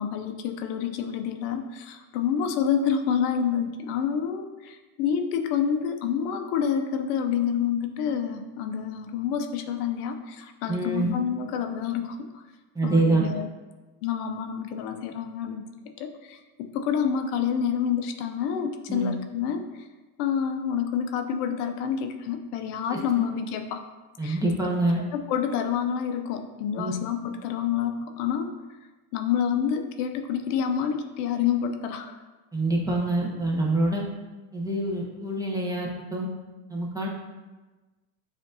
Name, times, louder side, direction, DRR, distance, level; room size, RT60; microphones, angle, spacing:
voice 1, 0.0-12.4 12.8-13.5 14.0-15.7 16.0-19.9 20.2-23.8 24.2-24.4 25.1-28.5 29.1-32.1, left 8 dB, 90° left, 6 dB, 0.6 m, -28 dB
voice 2, 10.7-11.1 12.7-13.2 18.9-19.1 22.9-23.0 24.2-25.0 26.8-26.9 32.5-34.0 34.5-36.3 36.7-37.1, right 2 dB, 10° right, -3 dB, 0.7 m, -25 dB
7.0 x 2.6 x 2.6 m, 1.2 s
supercardioid pair, 110°, 45 cm